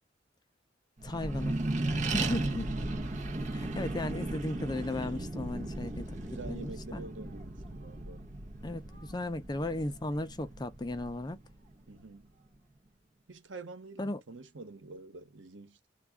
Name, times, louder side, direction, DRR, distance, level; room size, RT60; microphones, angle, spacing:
voice 1, 1.0-1.6 2.1-2.6 3.5-7.0 8.6-11.4 14.0-14.2, left 1 dB, 20° left, 0.5 m, -36 dB
Accelerating revving vroom, 1.0-11.9, right 2 dB, 40° right, 0.8 m, -36 dB
voice 2, 2.3-3.0 3.8-4.5 6.2-8.3 11.9-12.3 13.3-15.9, right 3 dB, 85° right, 1.0 m, -47 dB
3.5 x 2.3 x 3.4 m
head